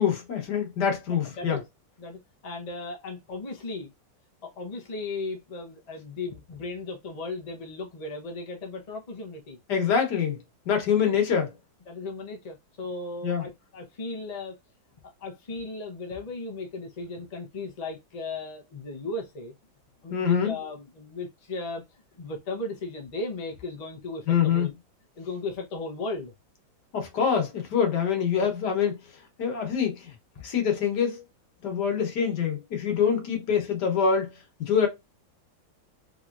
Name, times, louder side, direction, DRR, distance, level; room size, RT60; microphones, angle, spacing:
voice 1, 0.0-1.6 9.7-10.4 10.7-11.5 13.2-13.4 20.1-20.6 24.3-24.7 26.9-29.0 29.4-30.1 30.4-31.2 31.6-34.3 34.6-34.9, left 7 dB, 65° left, 1.6 m, -25 dB
voice 2, 1.2-1.6 2.0-3.9 4.4-9.6 11.9-14.6 15.0-19.5 20.0-21.8 22.1-24.7 25.2-26.3 28.3-28.5 30.3-30.4, left 3 dB, 45° left, 0.5 m, -36 dB
3.8 x 3.0 x 2.5 m
omnidirectional pair, 2.0 m